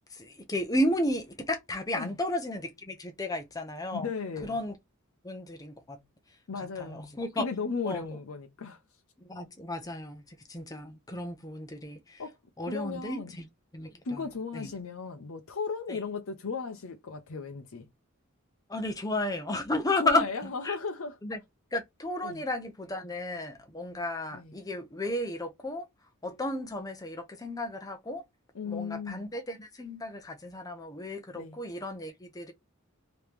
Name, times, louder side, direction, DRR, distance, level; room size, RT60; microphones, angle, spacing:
voice 1, 0.1-4.1 4.4-4.7 5.2-6.0 6.6-7.4 7.8-8.0 9.2-12.2 12.6-13.4 13.7-14.7 15.9-16.0 18.7-20.3 20.6-20.8 21.2-21.4 21.7-25.9 26.2-28.2 28.7-32.5, left 1 dB, 15° left, 0.7 m, -33 dB
voice 2, 3.9-4.6 6.5-8.8 12.2-12.3 12.7-13.3 14.0-17.9 20.0-21.2 22.2-22.4 24.3-24.6 28.5-29.3 31.3-31.6, left 5 dB, 70° left, 0.6 m, -36 dB
3.2 x 2.9 x 3.3 m
head